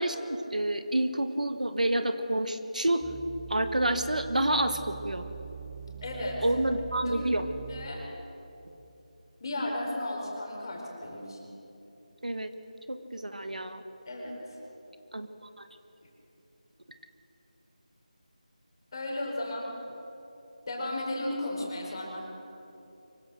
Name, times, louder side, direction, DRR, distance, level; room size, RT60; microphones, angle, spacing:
voice 1, 0.0-3.0 3.5-5.2 6.4-7.5 12.2-12.5 12.9-13.8 15.1-15.3 15.6-15.7, right 1 dB, 85° right, 8 dB, 1.7 m, -28 dB
sound 1, 3.0-8.1 8.7-8.8, right 7 dB, 15° right, 1.4 m, -43 dB
voice 2, 5.8-6.4 7.0-7.3 7.7-8.0 9.4-11.5 14.0-14.6 18.9-19.7 20.7-22.3, left 1 dB, 35° left, -1 dB, 5.0 m, -35 dB
24.5 x 16.5 x 6.5 m, 2.9 s
figure-of-eight pair, 165°, 4 cm